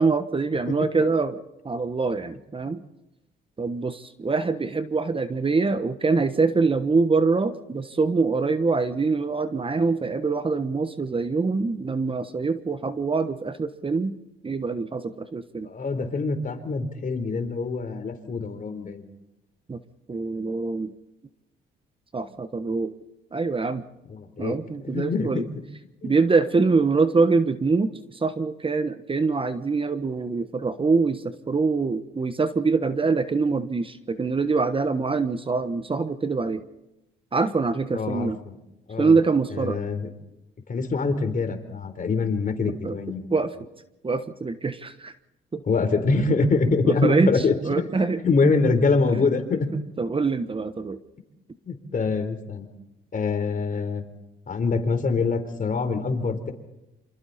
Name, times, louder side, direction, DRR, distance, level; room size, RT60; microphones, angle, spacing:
voice 1, 0.0-1.4 1.6-2.8 3.6-14.1 14.4-15.7 19.7-19.8 20.1-20.9 22.1-22.9 23.3-23.8 24.4-25.5 26.0-36.6 37.3-38.4 39.0-39.8 42.8-42.9 43.3-43.5 44.0-45.1 45.5-45.6 46.8-47.3 47.6-48.2 50.0-51.0, right 4 dB, 25° right, 11 dB, 1.2 m, -24 dB
voice 2, 15.6-19.0 24.1-25.3 26.0-26.1 37.9-38.6 38.9-39.1 39.5-40.1 40.7-43.3 45.7-49.7 51.6-52.7 53.1-54.0 54.5-56.5, left 4 dB, 45° left, 7 dB, 4.0 m, -25 dB
28.0 x 26.5 x 4.3 m, 0.92 s
cardioid pair, 90°, 20 cm